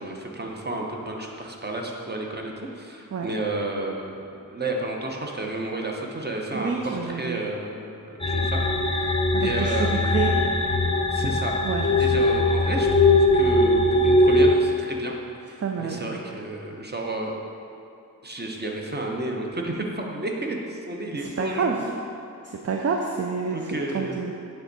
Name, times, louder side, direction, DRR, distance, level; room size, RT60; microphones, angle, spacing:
voice 1, 0.0-10.1 11.1-11.6 12.0-17.4 18.2-21.9 23.5-24.2, right 2 dB, 30° right, 0 dB, 0.9 m, -32 dB
voice 2, 6.5-7.4 9.3-10.4 11.6-12.2 15.6-16.1 21.1-21.9 22.4-24.3, right 5 dB, 45° right, 1 dB, 0.5 m, -28 dB
sound 1, 8.2-14.5, left 2 dB, 15° left, 0.6 m, -20 dB
8.9 x 3.5 x 4.1 m, 2.6 s
wide cardioid pair, 50°, 35 cm